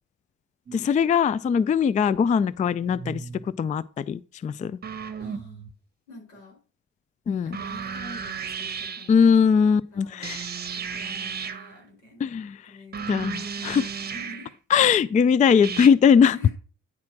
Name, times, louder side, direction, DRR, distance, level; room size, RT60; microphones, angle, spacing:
voice 1, 0.7-4.8 7.3-7.6 9.1-10.5 12.2-12.7 13.1-13.9 14.7-16.4, left 7 dB, 25° left, 0.3 m, -21 dB
sound 1, 0.7-1.0 2.1-2.2 2.7-3.5 4.8-5.7 7.5-9.1 10.2-11.8 12.9-14.5 15.6-15.9, right 6 dB, 30° right, 1.0 m, -34 dB
voice 2, 5.2-5.7 6.1-6.6 7.4-9.3 9.9-12.3 12.6-14.5 16.2-16.5, left 1 dB, 90° left, 4.9 m, -46 dB
9.8 x 4.2 x 5.9 m
cardioid pair, 90°, 30 cm